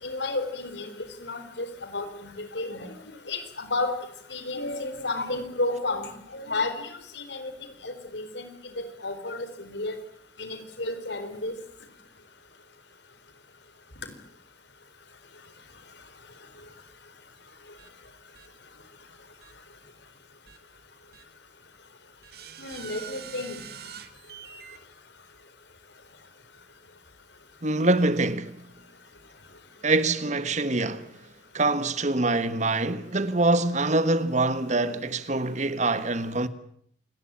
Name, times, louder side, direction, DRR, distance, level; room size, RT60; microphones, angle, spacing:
voice 1, 0.0-3.0 3.3-3.9 4.3-7.5 7.8-9.9 10.4-11.5 22.6-23.6, left 2 dB, 70° left, 4.3 m, -32 dB
sound 1, 17.8-17.9 18.3-18.5 19.4-19.5 20.5-20.6 21.1-21.2 22.2-24.8, right 8 dB, 55° right, 2.3 m, -44 dB
voice 2, 27.6-28.6 29.8-31.1 31.5-36.5, right 2 dB, 40° right, 1.5 m, -24 dB
28.0 x 19.5 x 8.9 m
head